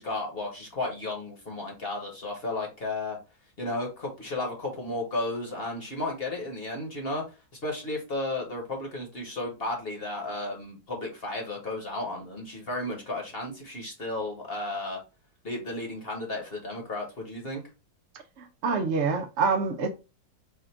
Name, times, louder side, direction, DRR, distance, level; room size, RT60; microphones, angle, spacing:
voice 1, 0.0-3.2 3.6-15.0 15.4-17.6, left 2 dB, 40° left, 1.1 m, -33 dB
voice 2, 18.4-19.9, right 5 dB, 75° right, 0.6 m, -26 dB
4.3 x 2.4 x 4.3 m
omnidirectional pair, 1.9 m